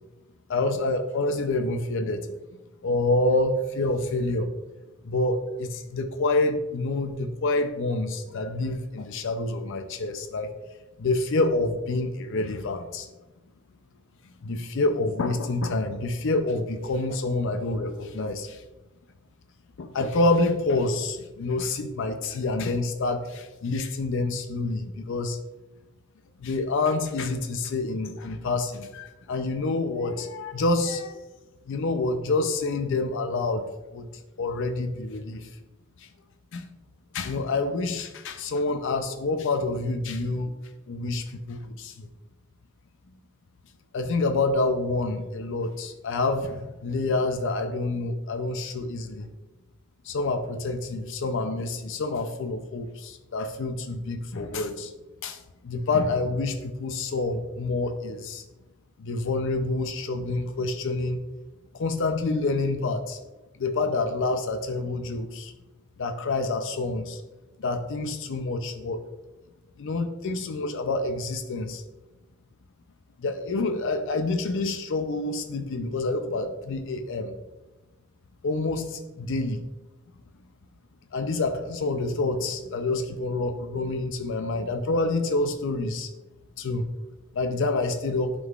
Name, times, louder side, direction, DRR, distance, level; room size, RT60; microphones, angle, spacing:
voice 1, 0.5-2.3 2.8-4.5 5.0-10.5 11.0-13.1 14.4-18.6 19.8-25.4 26.4-31.2 31.7-33.7 33.9-34.1 34.4-35.5 36.0-36.1 36.5-36.7 37.1-40.5 40.9-42.1 43.9-49.3 50.0-54.9 55.2-58.4 59.0-61.2 61.7-63.2 63.6-65.5 66.0-67.2 67.6-69.0 69.8-71.8 73.2-77.4 78.4-79.6 81.1-86.1 86.6-86.9 87.3-88.3, left 2 dB, 60° left, 7 dB, 0.5 m, -27 dB
11.0 x 3.7 x 2.4 m, 1.1 s
head